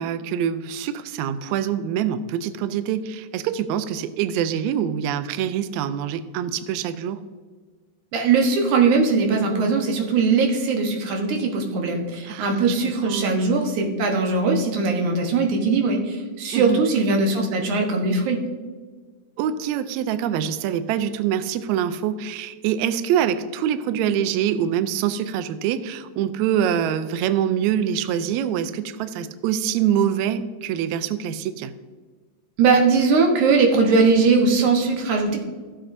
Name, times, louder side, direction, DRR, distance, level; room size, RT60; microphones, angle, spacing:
voice 1, 0.0-7.2 12.3-12.8 13.1-13.4 16.5-16.8 19.4-31.7, right 9 dB, 90° right, 11 dB, 1.6 m, -25 dB
voice 2, 8.1-18.4 32.6-35.4, right 4 dB, 70° right, 2 dB, 2.5 m, -20 dB
15.0 x 7.7 x 2.6 m, 1.4 s
omnidirectional pair, 3.8 m